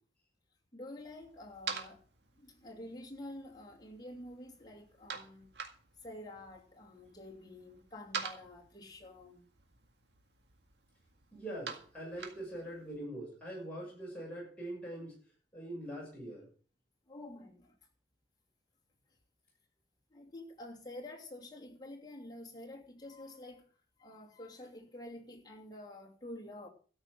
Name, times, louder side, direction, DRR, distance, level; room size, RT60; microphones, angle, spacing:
voice 1, 0.7-2.0 2.4-5.5 6.0-9.5 17.1-17.8 20.1-23.7 24.0-26.7, left 1 dB, 25° left, 2.7 m, -48 dB
sound 1, 1.0-13.0, right 6 dB, 75° right, 1.9 m, -48 dB
voice 2, 11.3-15.2 15.5-16.5, right 1 dB, 5° left, 6.7 m, -43 dB
13.0 x 6.1 x 8.5 m
head